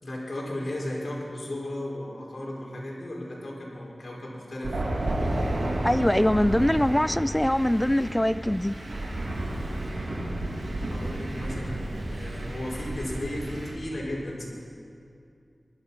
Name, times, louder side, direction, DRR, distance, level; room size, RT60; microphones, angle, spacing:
voice 1, 0.0-4.8 10.8-14.4, left 1 dB, 60° left, -4 dB, 4.3 m, -35 dB
Thunder, 4.6-13.7, right 1 dB, 90° right, 2.3 m, -31 dB
voice 2, 5.8-8.7, left 1 dB, 10° left, 16 dB, 0.3 m, -23 dB
20.5 x 12.5 x 5.5 m, 2.4 s
wide cardioid pair, 75°, 0 cm